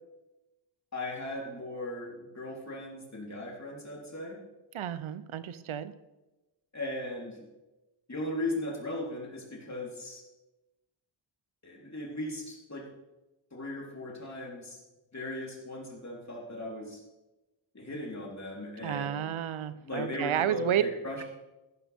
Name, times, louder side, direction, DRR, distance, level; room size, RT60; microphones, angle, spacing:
voice 1, 0.9-4.4 6.7-7.4 8.1-10.2 11.6-12.9 13.5-14.8 15.1-17.0 17.7-19.3 19.8-21.2, left 1 dB, 35° left, -2 dB, 3.6 m, -37 dB
voice 2, 4.7-5.9 18.8-20.8, right 10 dB, 85° right, 14 dB, 0.7 m, -31 dB
15.0 x 12.0 x 3.5 m, 1.0 s
wide cardioid pair, 85°, 48 cm